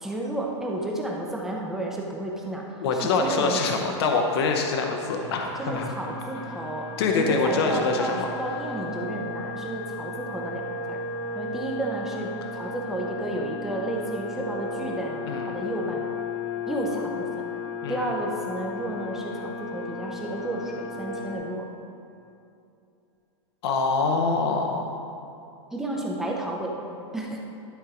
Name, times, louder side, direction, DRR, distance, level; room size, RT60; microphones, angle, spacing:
voice 1, 0.0-3.9 5.6-11.0 11.3-16.1 16.7-17.5 17.9-21.7 25.7-26.8 27.1-27.4, right 1 dB, 5° right, -1 dB, 0.6 m, -32 dB
voice 2, 2.8-5.9 7.0-8.3 15.3-15.5 17.8-18.0 23.6-25.0, left 4 dB, 55° left, 3 dB, 0.8 m, -25 dB
sound 1, 5.1-21.3, left 3 dB, 50° right, 1.4 m, -35 dB
11.5 x 4.5 x 5.0 m, 2.8 s
supercardioid pair, 165°, 15 cm